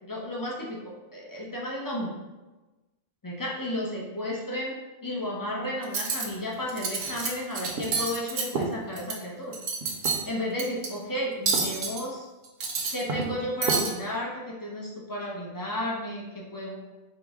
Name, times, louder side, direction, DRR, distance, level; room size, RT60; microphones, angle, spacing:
voice 1, 0.0-2.1 3.2-4.7 5.0-9.6 10.3-12.3 12.9-16.8, left 1 dB, 35° left, -4 dB, 0.3 m, -33 dB
Cutlery silverware, 5.8-6.2 6.7-7.3 7.5-9.1 9.5-10.2 10.6-10.9 11.5-12.0 12.4-13.3 13.6-13.9, right 4 dB, 60° right, 0.8 m, -28 dB
4.5 x 2.0 x 3.5 m, 1.1 s
omnidirectional pair, 1.3 m